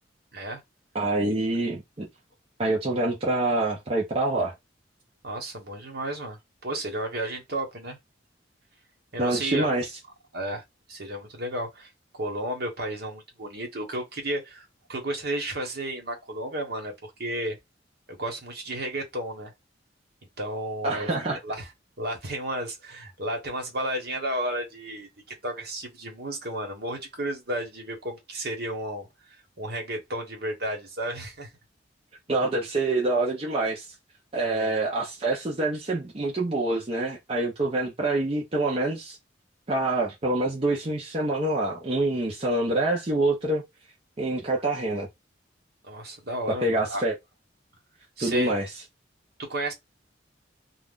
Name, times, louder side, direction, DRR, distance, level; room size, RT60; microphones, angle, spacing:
voice 1, 0.9-2.1 2.6-4.5 9.2-9.9 20.8-21.4 32.3-33.9 34.3-39.2 39.7-43.6 44.2-45.1 46.6-47.2 48.2-48.6, right 2 dB, 30° right, 0.6 m, -26 dB
voice 2, 5.2-8.0 9.1-9.7 10.3-10.6 10.9-17.6 18.1-19.5 20.4-21.7 22.0-25.1 25.4-31.5 34.4-34.8 45.8-47.0 48.2-48.5 49.4-49.7, right 1 dB, 55° right, 1.2 m, -33 dB
2.5 x 2.3 x 3.5 m
head